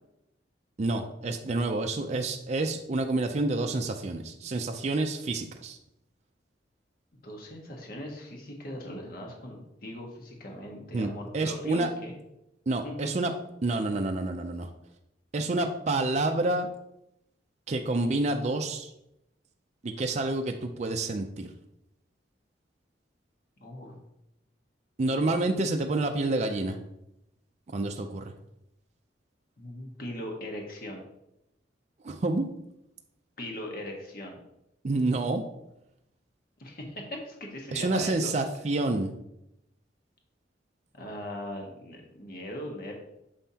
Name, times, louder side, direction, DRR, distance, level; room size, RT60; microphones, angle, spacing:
voice 1, 0.8-5.8 10.9-11.9 12.7-13.3 13.6-14.7 15.3-16.7 17.7-18.9 19.8-21.5 25.0-26.8 27.7-28.3 32.0-32.5 34.8-35.4 37.7-39.1, right 2 dB, 40° right, 4 dB, 0.4 m, -28 dB
voice 2, 7.2-12.2 12.8-13.1 23.6-23.9 29.6-31.0 33.4-34.4 36.6-38.3 40.9-42.9, left 1 dB, 50° left, 1 dB, 1.3 m, -39 dB
7.0 x 5.5 x 2.8 m, 0.84 s
head